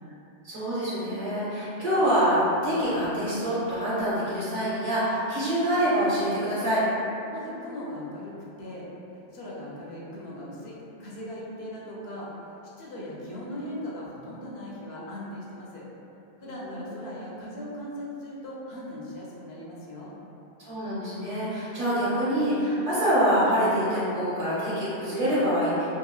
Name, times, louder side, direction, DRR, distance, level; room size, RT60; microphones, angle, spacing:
voice 1, 0.4-2.4 2.6-6.8 16.4-16.6 20.6-25.8, equal, 35° right, -12 dB, 0.9 m, -25 dB
voice 2, 7.3-8.3 8.6-10.7 11.0-12.5 12.8-15.8 16.4-20.1, left 1 dB, 80° left, -6 dB, 0.8 m, -39 dB
2.7 x 2.5 x 2.3 m, 2.9 s
omnidirectional pair, 1.1 m